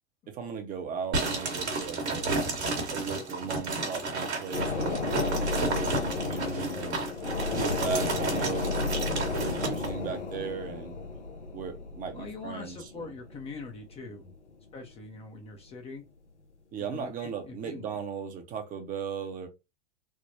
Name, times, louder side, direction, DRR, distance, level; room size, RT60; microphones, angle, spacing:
voice 1, 0.3-2.4 2.9-7.0 7.5-11.0 11.5-13.1 16.7-19.5, right 6 dB, 25° right, 0.6 m, -37 dB
sound 1, 1.1-9.9, right 3 dB, 70° right, 1.3 m, -32 dB
sound 2, 4.5-14.5 14.9-15.0, left 3 dB, 85° left, 0.8 m, -33 dB
voice 2, 12.1-14.2 14.7-16.1 16.9-17.9, left 3 dB, 20° left, 0.5 m, -43 dB
3.5 x 2.1 x 2.6 m
figure-of-eight pair, 95°, 34 cm